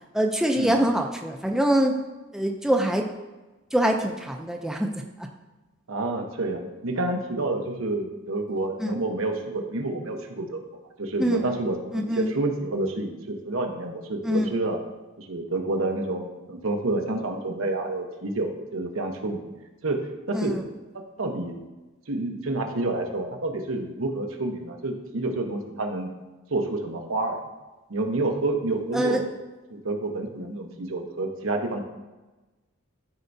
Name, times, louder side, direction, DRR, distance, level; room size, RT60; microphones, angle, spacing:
voice 1, 0.1-2.0 2.3-3.1 3.7-5.3 8.8-9.0 11.2-11.5 11.9-12.3 14.2-14.5 20.3-20.6 28.9-29.2, right 1 dB, ahead, 2 dB, 0.5 m, -24 dB
voice 2, 5.9-10.6 11.0-14.8 15.2-19.5 19.8-20.0 20.3-20.6 21.2-21.6 22.1-26.1 26.5-27.4 27.9-29.2 29.7-31.8, right 2 dB, 85° right, 3 dB, 1.0 m, -28 dB
12.5 x 4.6 x 2.7 m, 1.2 s
head